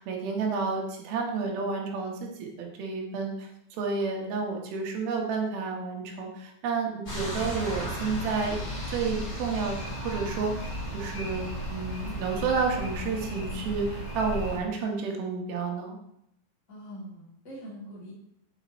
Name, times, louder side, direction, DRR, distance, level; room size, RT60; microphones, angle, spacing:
voice 1, 0.0-3.5 3.8-8.6 8.9-16.0, right 4 dB, 70° right, 0 dB, 2.7 m, -31 dB
sound 1, 7.1-14.6, equal, 20° left, 1.9 m, -35 dB
voice 2, 16.7-18.1, equal, 40° left, -6 dB, 1.0 m, -43 dB
6.7 x 5.7 x 4.2 m, 0.79 s
omnidirectional pair, 5.1 m